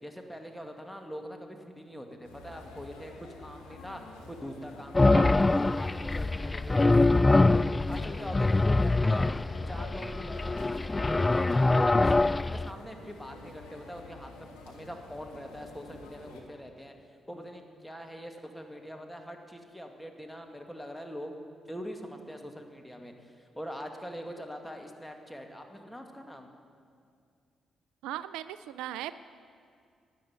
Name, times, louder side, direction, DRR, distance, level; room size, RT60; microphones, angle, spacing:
voice 1, 0.0-4.0 4.3-5.5 5.8-9.3 9.7-16.9 17.3-21.3 21.7-26.5, equal, 5° left, 3 dB, 2.2 m, -43 dB
sound 1, 2.2-16.4, left 2 dB, 85° left, 1.6 m, -49 dB
sound 2, 4.9-12.7, left 2 dB, 25° left, 0.3 m, -24 dB
voice 2, 28.0-29.2, right 12 dB, 80° right, 14 dB, 0.3 m, -38 dB
13.0 x 9.5 x 9.5 m, 2.3 s
hypercardioid pair, 40°, 0 cm